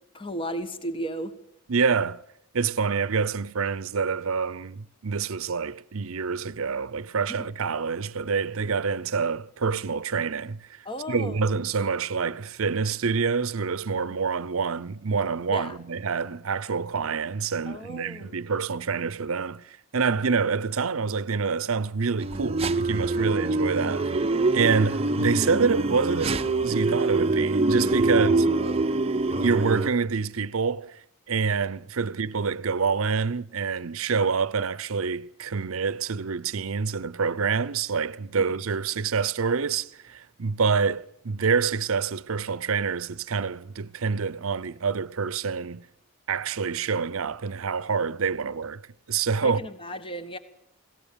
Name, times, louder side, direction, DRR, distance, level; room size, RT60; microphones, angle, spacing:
voice 1, 0.1-1.3 7.3-7.5 10.8-11.5 15.5-15.8 17.7-18.4 23.1-23.4 28.1-28.9 38.4-38.5 49.4-50.4, right 1 dB, 25° left, 1.4 m, -35 dB
voice 2, 1.7-2.2 2.5-24.2 24.5-28.5 29.3-45.9 46.3-48.8 49.1-49.6, right 5 dB, 75° right, 0.7 m, -27 dB
sound 1, 22.2-29.9, right 2 dB, 25° right, 0.7 m, -24 dB
21.5 x 17.5 x 6.9 m
head